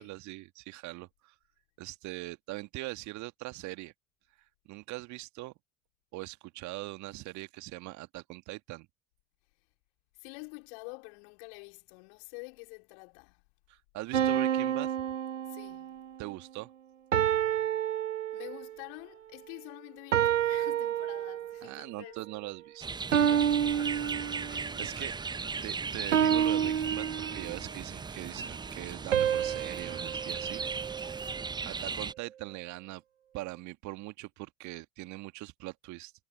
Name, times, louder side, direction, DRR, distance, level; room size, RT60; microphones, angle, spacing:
voice 1, 0.0-1.3 1.8-3.9 4.7-5.5 6.1-8.9 13.7-14.9 16.2-16.7 21.6-22.9 24.5-25.1 25.6-30.6 31.6-33.0 33.3-36.1, right 20 dB, 50° right, 1.8 m, -41 dB
voice 2, 10.1-13.4 15.5-16.1 18.3-22.2 23.1-24.0 24.5-24.9 31.0-31.6, left 38 dB, 60° left, 4.0 m, -48 dB
sound 1, 14.1-16.1 17.1-18.8 20.1-21.7 23.1-24.8 26.1-27.7 29.1-31.5, right 9 dB, 75° right, 1.2 m, -29 dB
sound 2, 22.8-32.1, right 4 dB, 10° right, 0.7 m, -37 dB
figure-of-eight pair, 65°, 38 cm